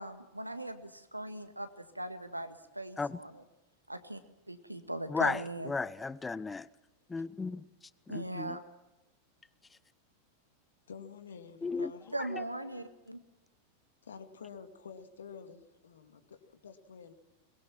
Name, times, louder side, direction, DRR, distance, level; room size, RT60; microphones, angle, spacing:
voice 1, 0.0-3.4 3.9-4.2 4.5-5.7 8.1-8.6 12.1-13.2, right 1 dB, 85° right, 1.8 m, -40 dB
voice 2, 5.7-6.7 7.1-7.6 8.1-8.5 11.6-11.9, left 4 dB, 10° left, 0.8 m, -33 dB
voice 3, 10.9-12.1 14.0-17.1, left 6 dB, 65° left, 2.3 m, -49 dB
22.5 x 21.5 x 6.0 m
figure-of-eight pair, 90°, 0 cm